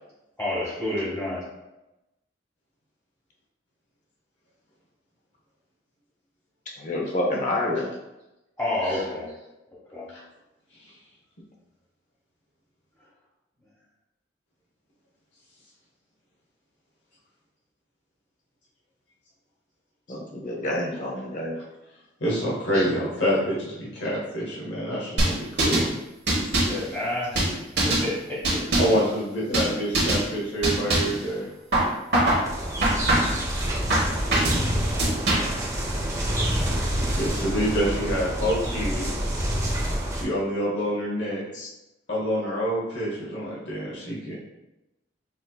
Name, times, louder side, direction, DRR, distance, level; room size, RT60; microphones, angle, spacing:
voice 1, 0.4-1.4 8.6-9.3 9.9-10.1 22.7-22.9 26.7-27.4 27.8-28.6, left 1 dB, 15° left, -9 dB, 1.1 m, -29 dB
voice 2, 6.8-7.9 20.1-21.5 29.5-29.6 33.9-34.0 41.5-41.7, left 1 dB, 45° left, -1 dB, 0.7 m, -28 dB
voice 3, 22.2-25.9 28.8-31.5 37.0-39.1 40.1-41.4 42.1-44.4, equal, 75° left, -5 dB, 0.9 m, -27 dB
sound 1, 25.2-25.9 26.3-26.8 27.4-28.1 28.4-29.0 29.5-29.7 29.9-30.2 30.6-31.2 31.7-32.4 32.8-33.4 33.9-34.6 35.0-35.6, right 1 dB, 65° right, 1.3 m, -22 dB
sound 2, 32.4-40.2, equal, 20° right, 0.6 m, -27 dB
6.1 x 2.7 x 2.3 m, 0.96 s
head